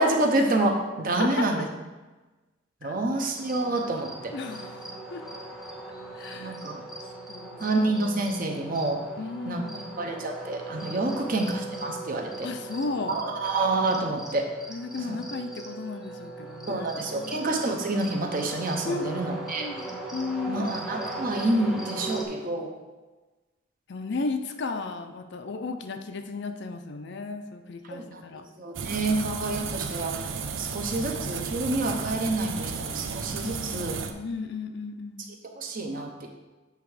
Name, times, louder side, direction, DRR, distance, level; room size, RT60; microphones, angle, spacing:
voice 1, 0.0-1.7 2.8-4.3 6.4-6.8 7.6-9.0 9.5-9.6 10.0-12.5 13.1-14.5 16.7-19.7 20.5-22.7 27.9-28.2 28.6-30.1 30.6-34.0 35.6-36.3, right 2 dB, 45° right, 2 dB, 0.8 m, -28 dB
sound 1, 3.4-22.3, right 2 dB, ahead, 0.7 m, -39 dB
voice 2, 4.3-4.8 5.1-5.4 6.1-6.6 7.3-7.8 9.2-10.0 11.2-11.3 12.4-13.2 14.7-17.5 18.9-19.2 19.5-20.7 23.9-28.5 33.4-35.3, left 3 dB, 60° left, 7 dB, 0.5 m, -35 dB
sound 2, 28.7-34.1, right 5 dB, 85° right, 0.5 m, -33 dB
8.1 x 3.5 x 4.8 m, 1.2 s
head